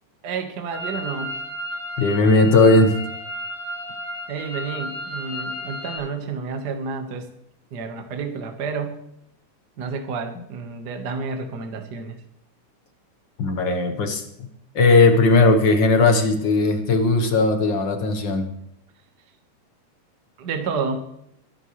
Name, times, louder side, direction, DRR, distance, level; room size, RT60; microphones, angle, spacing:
voice 1, 0.2-1.4 4.3-7.3 7.7-9.0 9.8-12.2 20.4-21.1, right 4 dB, 50° right, 5 dB, 1.3 m, -30 dB
sound 1, 0.7-6.0, equal, ahead, 6.0 m, -33 dB
voice 2, 2.0-2.9 13.4-14.2 14.7-18.5, left 3 dB, 60° left, 6 dB, 1.2 m, -17 dB
22.5 x 9.9 x 3.2 m, 0.76 s
omnidirectional pair, 3.6 m